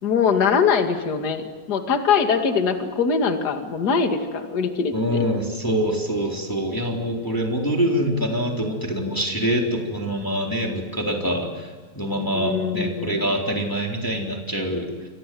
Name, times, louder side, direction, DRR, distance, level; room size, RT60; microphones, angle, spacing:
voice 1, 0.0-4.9 12.3-13.3, left 6 dB, 35° left, 6 dB, 2.2 m, -22 dB
voice 2, 4.9-14.9, equal, 5° left, 0 dB, 3.3 m, -25 dB
29.5 x 24.5 x 7.8 m, 1.4 s
omnidirectional pair, 4.0 m